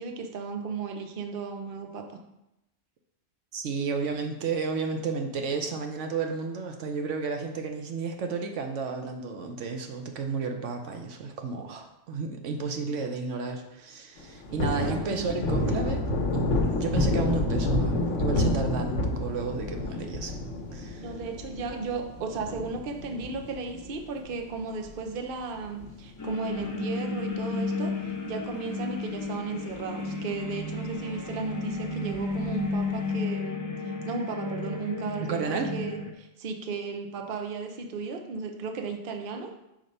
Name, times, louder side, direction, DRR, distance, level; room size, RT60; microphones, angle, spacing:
voice 1, 0.0-2.2 14.5-15.2 21.0-39.5, right 4 dB, 50° right, 4 dB, 0.8 m, -35 dB
voice 2, 3.5-20.4 20.7-21.1 35.2-35.7, right 4 dB, 80° right, 4 dB, 1.1 m, -32 dB
Thunder, 14.2-24.9 25.3-25.4 25.7-27.2 27.5-27.7 28.0-28.8 29.2-29.3 29.7-29.8 32.1-32.7, left 2 dB, 85° left, 1.2 m, -29 dB
sound 1, 26.2-36.1, left 3 dB, 25° left, 0.5 m, -33 dB
5.1 x 4.5 x 5.3 m, 0.89 s
omnidirectional pair, 1.2 m